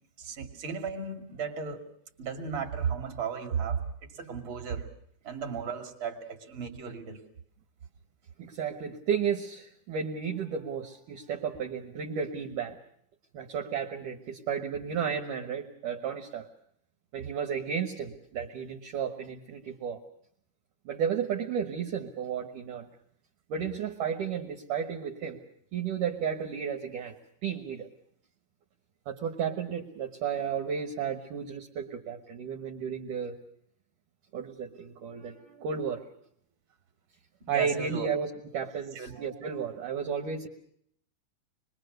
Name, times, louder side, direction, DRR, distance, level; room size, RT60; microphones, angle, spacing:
voice 1, 0.2-1.8 2.2-4.9 5.2-7.2 37.4-38.1 38.9-39.2, right 6 dB, 35° right, 4 dB, 2.6 m, -35 dB
voice 2, 8.4-12.8 13.3-16.5 17.1-20.0 20.9-22.9 23.5-25.4 25.7-27.2 27.4-27.9 29.1-33.4 34.3-36.0 37.5-38.3 38.5-40.5, right 7 dB, 60° right, 2 dB, 2.5 m, -33 dB
26.5 x 21.5 x 6.6 m, 0.69 s
omnidirectional pair, 4.7 m